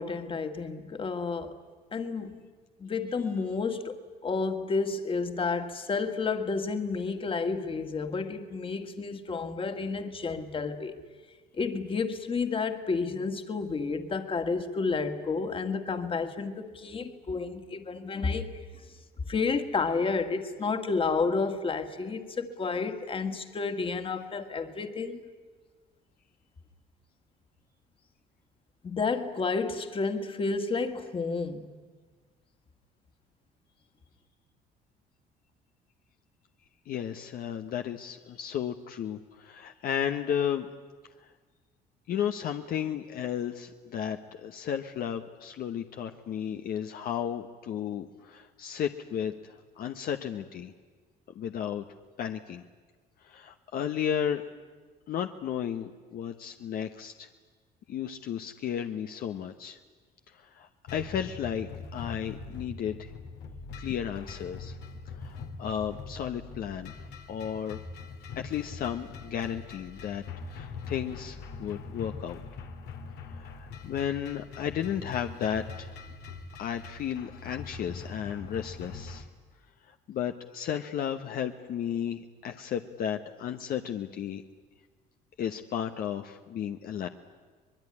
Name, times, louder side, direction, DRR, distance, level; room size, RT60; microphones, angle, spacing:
voice 1, 0.0-1.6 1.9-2.4 2.8-11.0 11.5-18.5 19.3-25.2 28.8-31.7, left 4 dB, 30° left, 8 dB, 2.0 m, -31 dB
voice 2, 36.9-40.7 41.2-41.3 42.1-50.7 51.3-51.8 52.2-52.6 53.2-54.4 55.1-57.3 57.9-59.8 60.3-63.1 63.8-64.8 65.1-66.9 67.3-67.8 68.4-72.4 73.3-76.0 76.6-79.3 79.8-84.4 85.4-87.1, left 9 dB, 60° left, 6 dB, 1.1 m, -34 dB
sound 1, 60.9-79.2, left 4 dB, 80° left, 2.2 m, -42 dB
24.0 x 21.0 x 9.9 m, 1.4 s
cardioid pair, 110°, 17 cm